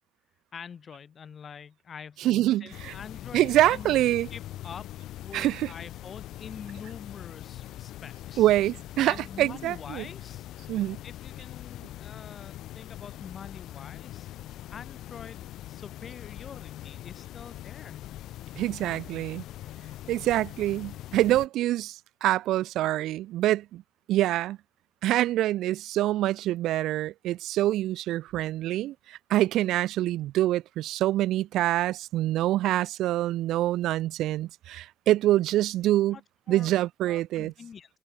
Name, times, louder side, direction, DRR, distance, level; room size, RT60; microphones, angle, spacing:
voice 1, 0.5-3.9 4.3-4.9 5.2-8.5 9.0-10.5 11.0-14.3 14.7-18.0 36.1-36.2 36.5-36.7 37.0-38.0, left 7 dB, 35° left, 3.0 m, -45 dB
voice 2, 2.2-2.9 3.3-4.3 5.3-5.7 8.4-10.1 10.7-11.0 18.6-19.4 20.1-23.8 24.1-24.6 25.0-36.2 36.5-37.5, right 14 dB, 80° right, 0.3 m, -25 dB
sound 1, 2.7-21.5, left 14 dB, 75° left, 0.6 m, -42 dB
open air
cardioid pair, 160°, 0 cm